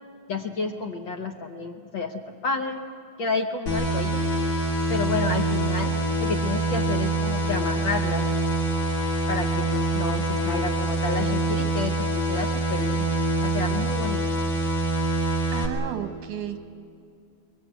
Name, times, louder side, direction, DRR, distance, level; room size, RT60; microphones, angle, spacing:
voice 1, 0.3-2.9 3.2-4.3 4.9-8.3 9.3-13.1 13.4-14.2, left 4 dB, 65° left, 4 dB, 1.2 m, -30 dB
sound 1, 3.7-15.7, right 2 dB, 80° left, 4.2 m, -25 dB
voice 2, 15.5-16.6, right 10 dB, 90° right, 7 dB, 2.7 m, -33 dB
23.5 x 23.5 x 8.2 m, 2.4 s
omnidirectional pair, 3.4 m